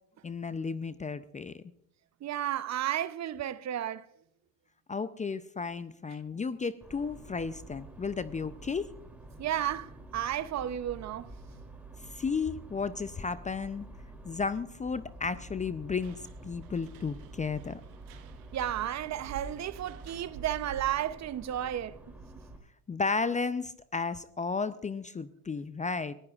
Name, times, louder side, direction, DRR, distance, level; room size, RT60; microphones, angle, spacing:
voice 1, 0.2-1.6 4.9-8.9 12.1-13.9 14.2-17.8 22.9-26.1, left 4 dB, 20° left, 0.5 m, -33 dB
voice 2, 2.2-4.1 9.4-11.3 18.5-22.0, right 11 dB, 40° right, 0.7 m, -33 dB
sound 1, 6.8-22.6, right 2 dB, 5° right, 2.9 m, -48 dB
sound 2, 15.9-21.1, right 4 dB, 85° right, 1.5 m, -50 dB
23.0 x 15.0 x 2.4 m
hypercardioid pair, 80°, 42 cm